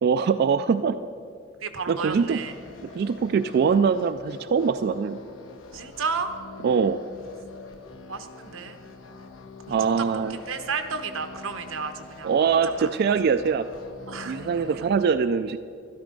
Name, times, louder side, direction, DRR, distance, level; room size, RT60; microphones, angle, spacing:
voice 1, 0.0-1.0 1.9-2.4 3.0-5.2 6.6-7.0 9.7-10.4 12.2-13.7 14.3-15.6, right 6 dB, 50° right, 10 dB, 0.3 m, -23 dB
voice 2, 1.6-2.5 5.7-6.3 8.1-8.8 9.7-12.3 12.6-13.0 14.1-14.5, right 5 dB, 90° right, 8 dB, 1.0 m, -32 dB
sound 1, 2.1-14.9, left 3 dB, 85° left, 1.2 m, -45 dB
12.5 x 12.5 x 5.2 m, 2.5 s
head